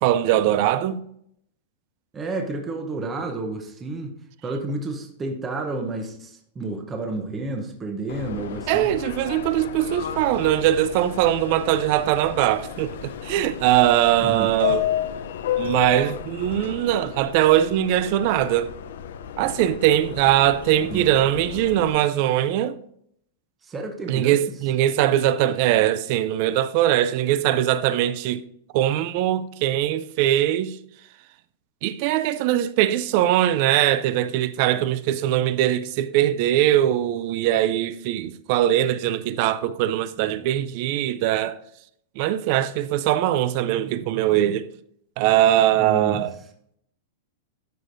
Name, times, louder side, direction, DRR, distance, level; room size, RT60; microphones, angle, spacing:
voice 1, 0.0-1.0 8.7-14.8 15.6-18.7 19.4-22.8 24.1-28.4 28.7-30.8 31.8-41.6 42.2-44.7 45.2-46.3, right 12 dB, 40° right, 0.4 m, -21 dB
voice 2, 2.1-4.2 4.4-8.9 14.2-14.5 20.9-21.1 23.6-24.5 45.7-46.2, right 3 dB, 15° right, 0.7 m, -31 dB
Subway metro underground, 8.1-21.9, left 10 dB, 70° left, 0.5 m, -32 dB
12.0 x 5.0 x 2.6 m
supercardioid pair, 170°, 0 cm